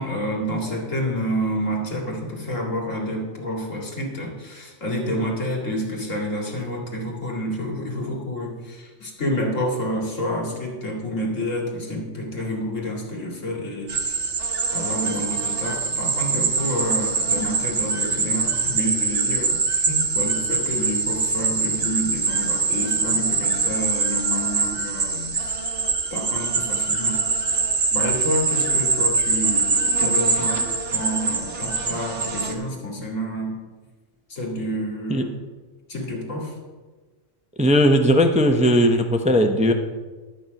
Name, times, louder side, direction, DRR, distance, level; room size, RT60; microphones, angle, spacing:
voice 1, 0.0-14.2 14.7-25.5 26.1-27.2 27.9-33.5 34.3-35.3 35.9-36.5, equal, 85° left, -1 dB, 2.5 m, -29 dB
sound 1, 13.9-32.5, right 4 dB, 65° right, 1.4 m, -23 dB
voice 2, 37.6-39.7, equal, 10° right, 5 dB, 0.5 m, -18 dB
11.0 x 8.5 x 5.2 m, 1.3 s
omnidirectional pair, 1.3 m